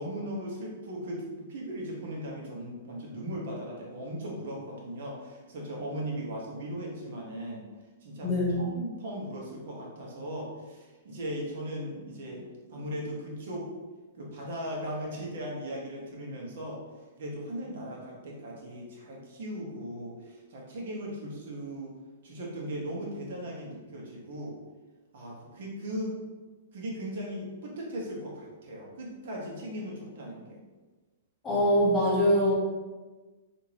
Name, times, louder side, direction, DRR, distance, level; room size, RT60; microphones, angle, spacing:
voice 1, 0.0-7.7 8.0-13.7 14.2-16.8 17.2-22.0 22.2-24.5 25.1-26.2 26.7-30.6, equal, 65° right, -2 dB, 1.1 m, -38 dB
voice 2, 8.2-8.6 31.4-32.5, equal, 15° left, -5 dB, 1.3 m, -23 dB
3.5 x 2.6 x 3.0 m, 1.3 s
hypercardioid pair, 140°, 0 cm